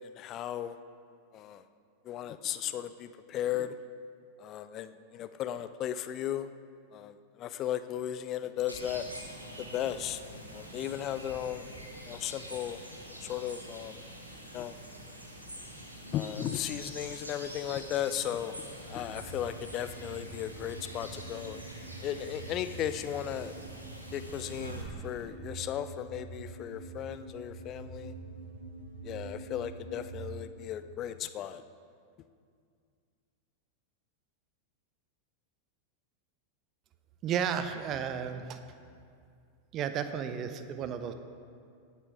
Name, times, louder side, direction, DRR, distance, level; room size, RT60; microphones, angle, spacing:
voice 1, 0.0-0.8 1.3-1.7 2.0-3.8 4.4-6.5 6.9-9.1 9.6-10.2 10.5-11.7 12.1-12.8 13.2-14.0 14.5-14.8 16.1-18.6 18.9-21.6 22.0-23.5 24.1-28.1 29.0-31.6, left 11 dB, 35° left, 12 dB, 0.5 m, -36 dB
sound 1, 8.7-24.8, equal, 85° right, 1.4 m, -46 dB
sound 2, 18.9-30.4, right 3 dB, 65° right, 1.8 m, -45 dB
voice 2, 37.2-38.6 39.7-41.1, right 8 dB, 35° right, 10 dB, 0.7 m, -33 dB
18.5 x 8.4 x 3.6 m, 2.3 s
figure-of-eight pair, 90°, 0 cm